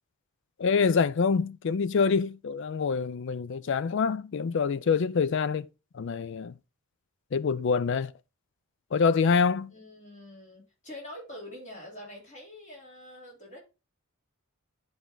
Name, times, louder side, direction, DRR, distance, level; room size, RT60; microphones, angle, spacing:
voice 1, 0.6-5.7 5.9-6.5 7.3-8.1 8.9-9.7, left 5 dB, 55° left, 0.4 m, -26 dB
voice 2, 9.7-13.6, left 1 dB, 30° left, 3.3 m, -45 dB
10.0 x 3.5 x 3.8 m
head